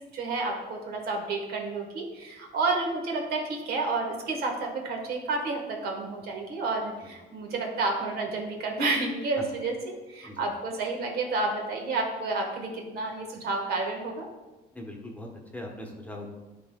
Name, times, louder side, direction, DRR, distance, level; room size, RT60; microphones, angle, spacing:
voice 1, 0.1-14.3, right 3 dB, 65° right, 2 dB, 1.4 m, -30 dB
voice 2, 14.7-16.3, left 1 dB, 10° left, 0 dB, 1.0 m, -41 dB
11.0 x 3.9 x 2.2 m, 1.1 s
cardioid pair, 110°, 17 cm